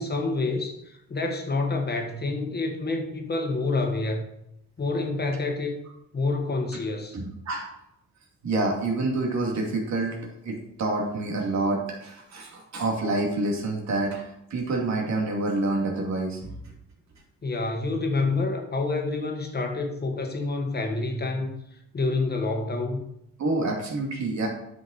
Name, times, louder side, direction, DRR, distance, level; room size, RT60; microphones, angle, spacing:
voice 1, 0.0-4.2 4.8-5.8 6.1-7.2 17.4-21.5 21.9-23.0, left 3 dB, 35° left, 3 dB, 1.5 m, -28 dB
voice 2, 7.1-7.7 8.4-10.2 10.4-14.2 14.5-16.5 23.4-24.5, right 2 dB, 65° right, 0 dB, 2.6 m, -27 dB
9.4 x 5.8 x 4.2 m, 0.79 s
cardioid pair, 90°, 30 cm